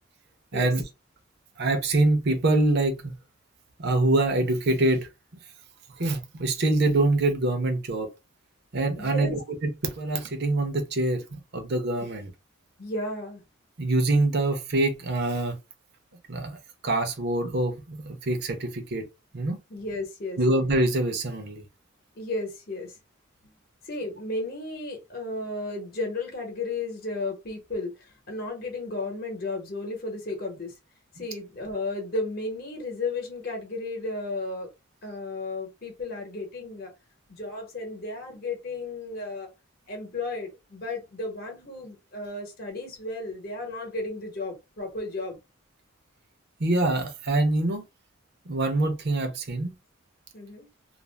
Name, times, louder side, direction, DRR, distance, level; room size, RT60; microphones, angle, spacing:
voice 1, 0.5-0.8 1.6-3.1 3.8-5.1 6.0-8.1 8.7-12.3 13.8-15.6 16.3-16.6 16.8-19.0 19.3-19.6 20.4-21.6 46.6-47.8 48.5-49.7, right 2 dB, 55° right, 0.7 m, -25 dB
voice 2, 9.0-9.4 12.8-13.4 19.7-20.4 22.2-22.9 23.8-27.9 28.3-30.7 31.2-34.7 35.0-36.9 37.3-39.5 39.9-45.4 50.3-50.7, left 2 dB, 50° left, 0.9 m, -33 dB
2.5 x 2.1 x 3.2 m
head